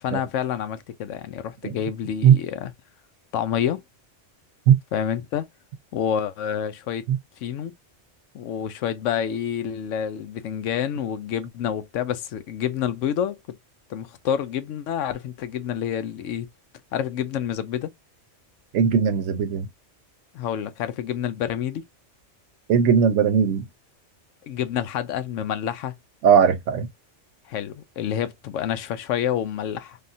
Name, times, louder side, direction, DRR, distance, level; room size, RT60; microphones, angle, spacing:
voice 1, 0.0-2.7 3.3-3.8 4.9-5.5 5.9-7.0 7.4-7.7 8.3-13.6 13.9-16.5 16.9-17.9 20.3-21.8 24.4-25.9 27.5-30.0, left 9 dB, 90° left, 1.0 m, -28 dB
voice 2, 18.7-19.7 22.7-23.7 26.2-26.9, right 7 dB, 90° right, 1.0 m, -18 dB
3.4 x 2.3 x 2.5 m
omnidirectional pair, 1.2 m